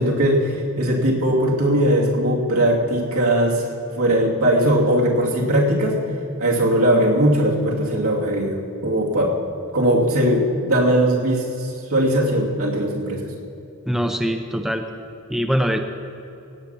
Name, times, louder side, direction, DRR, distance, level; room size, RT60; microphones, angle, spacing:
voice 1, 0.0-3.6 3.9-6.0 6.4-9.3 9.7-13.2, right 1 dB, 85° right, -3 dB, 2.7 m, -19 dB
voice 2, 13.9-14.8 15.3-15.8, equal, ahead, 5 dB, 0.6 m, -22 dB
17.5 x 5.8 x 8.4 m, 2.8 s
head